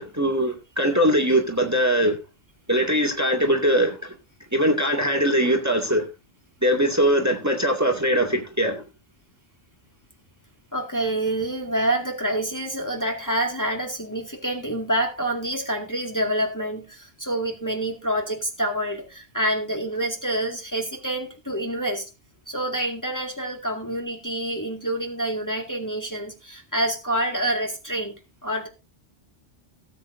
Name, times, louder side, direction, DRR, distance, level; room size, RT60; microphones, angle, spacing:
voice 1, 0.0-2.2 2.7-4.2 4.5-6.1 6.6-8.8, equal, 15° right, 2.2 m, -21 dB
voice 2, 10.7-22.1 22.5-28.7, right 1 dB, 15° left, 2.2 m, -27 dB
18.0 x 8.7 x 2.7 m
omnidirectional pair, 1.2 m